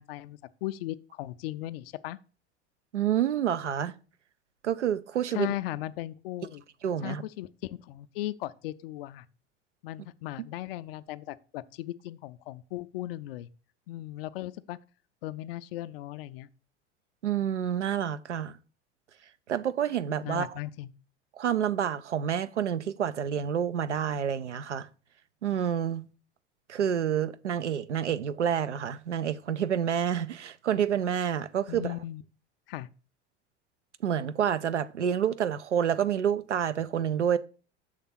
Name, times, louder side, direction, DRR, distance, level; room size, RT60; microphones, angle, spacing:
voice 1, 0.0-2.2 5.3-6.6 7.0-9.3 9.8-13.5 13.9-14.8 15.2-16.5 20.2-20.9 31.7-32.2 32.7-32.9, left 15 dB, 55° left, 0.5 m, -37 dB
voice 2, 2.9-3.9 4.6-5.5 6.8-7.2 17.2-18.6 19.5-20.5 21.4-24.9 25.4-26.1 26.7-31.9 34.0-37.4, right 9 dB, 85° right, 0.5 m, -28 dB
6.5 x 3.6 x 5.7 m
figure-of-eight pair, 75°, 35 cm